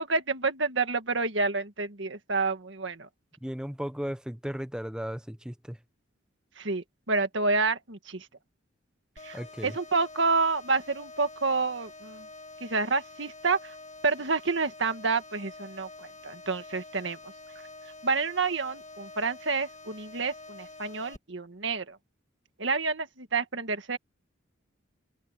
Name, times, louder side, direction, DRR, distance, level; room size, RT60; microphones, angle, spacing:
voice 1, 0.0-3.1 6.6-8.3 9.2-12.3 12.6-13.8 14.0-17.3 18.0-22.0 22.6-24.0, right 4 dB, 65° right, 1.8 m, -29 dB
voice 2, 3.4-5.8 9.3-9.8, equal, 5° right, 0.9 m, -35 dB
sound 1, 9.2-21.2, left 2 dB, 35° left, 2.3 m, -47 dB
open air
head